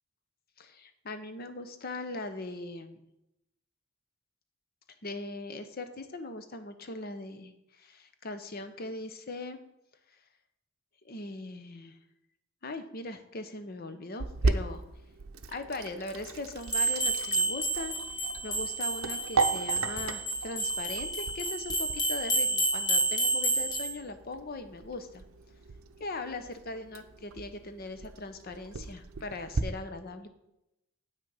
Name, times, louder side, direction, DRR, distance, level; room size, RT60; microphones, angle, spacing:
voice 1, 0.6-3.0 5.0-9.6 11.0-12.0 12.6-14.8 15.5-25.2 26.0-30.3, left 2 dB, 45° left, 9 dB, 0.8 m, -40 dB
Sink (filling or washing), 14.2-29.6, right 3 dB, 70° right, 0.6 m, -37 dB
sound 1, 16.7-23.9, right 2 dB, 20° left, 1.7 m, -30 dB
8.2 x 6.3 x 5.6 m, 0.87 s
head